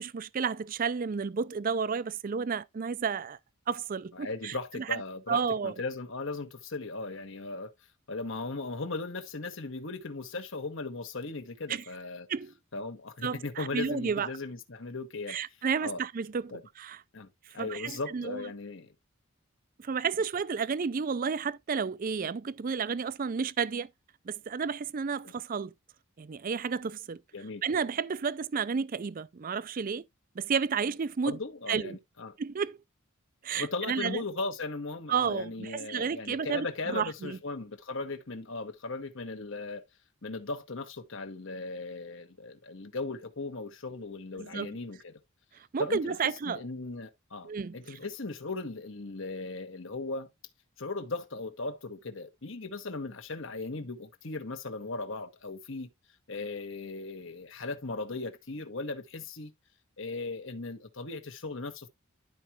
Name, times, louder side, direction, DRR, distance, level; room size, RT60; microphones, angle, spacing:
voice 1, 0.0-3.4 3.7-5.0 5.3-5.8 11.7-11.8 12.3-12.5 13.2-14.3 15.3-17.0 17.5-18.5 19.8-23.9 24.3-25.7 26.2-27.2 27.6-30.0 30.4-31.4 31.7-32.0 32.4-32.8 33.4-34.2 35.1-37.4 44.4-44.8 45.5-46.6 47.4-47.8, right 6 dB, 40° right, 0.4 m, -32 dB
voice 2, 4.1-7.7 8.1-12.3 12.7-15.4 15.8-16.0 16.5-16.6 17.1-17.3 17.5-18.9 27.3-27.6 31.2-32.3 33.5-39.8 40.2-45.1 45.8-50.3 50.8-55.9 56.3-59.5 60.0-61.9, left 3 dB, 60° left, 1.3 m, -37 dB
12.0 x 4.8 x 2.9 m
head